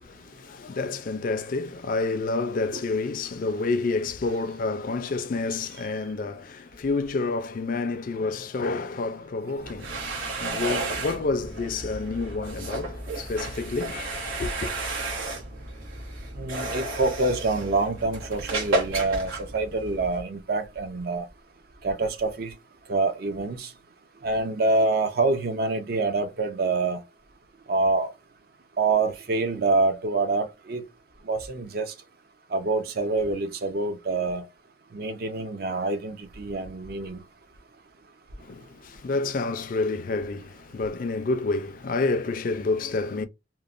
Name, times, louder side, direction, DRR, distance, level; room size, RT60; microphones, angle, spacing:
voice 1, 0.0-14.7 38.4-43.3, left 3 dB, 45° left, 0.4 m, -29 dB
sound 1, 9.6-20.2, right 2 dB, 85° right, 1.1 m, -32 dB
voice 2, 16.4-21.3 21.8-22.5 22.9-23.7 24.2-27.0 27.7-28.1 28.8-30.8 31.3-31.9 32.5-34.4 34.9-37.2, right 3 dB, 50° right, 0.5 m, -26 dB
3.0 x 2.1 x 2.4 m
head